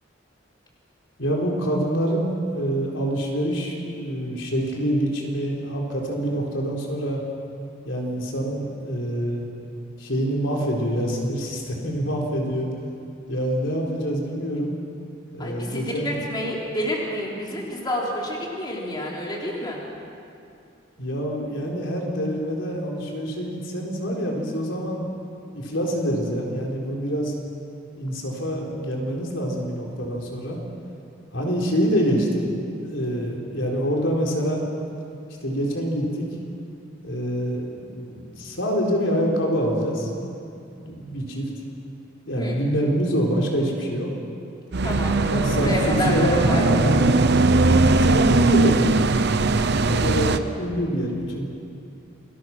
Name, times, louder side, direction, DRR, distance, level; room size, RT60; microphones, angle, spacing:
voice 1, 1.2-7.2 7.9-9.5 10.0-12.7 13.3-14.8 15.3-16.2 21.0-25.0 25.5-27.3 28.0-30.6 31.3-32.5 32.8-34.6 35.4-36.3 37.0-40.4 40.7-41.5 42.3-44.1 45.3-47.1 48.0-49.1 49.6-51.5, equal, 75° left, -1 dB, 4.3 m, -26 dB
voice 2, 15.4-19.8 42.4-42.6 44.8-45.2 45.6-46.7, equal, 25° left, -3 dB, 3.4 m, -29 dB
sound 1, 44.7-50.4, right 2 dB, 60° right, 0.9 m, -19 dB
28.5 x 21.0 x 6.1 m, 2.5 s
head